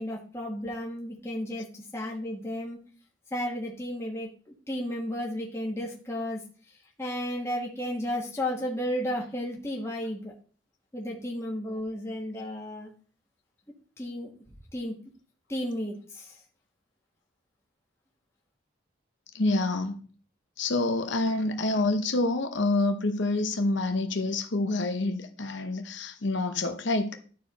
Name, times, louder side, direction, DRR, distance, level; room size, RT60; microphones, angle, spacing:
voice 1, 0.0-2.8 3.3-4.3 4.7-6.4 7.0-10.3 10.9-12.9 14.0-14.3 14.7-14.9 15.5-16.3, equal, 15° left, 1.4 m, -33 dB
voice 2, 19.3-20.0 20.6-27.2, left 2 dB, 65° left, 0.9 m, -27 dB
12.0 x 4.6 x 4.1 m
head